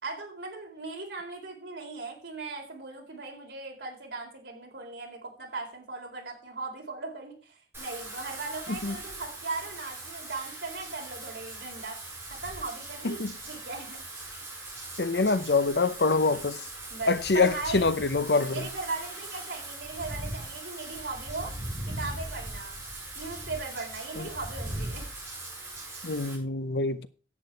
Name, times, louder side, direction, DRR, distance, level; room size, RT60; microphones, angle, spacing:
voice 1, 0.0-12.0 12.3-14.0 16.1-16.6 16.9-17.9 18.5-21.5 21.9-22.8 23.1-25.1, right 3 dB, 85° right, 4.0 m, -38 dB
Wind / Rain, 7.7-26.4, right 2 dB, 15° right, 5.3 m, -40 dB
voice 2, 15.0-16.6 17.1-18.7 24.2-24.3 26.0-27.1, left 3 dB, 70° left, 0.8 m, -25 dB
11.0 x 8.5 x 4.6 m
head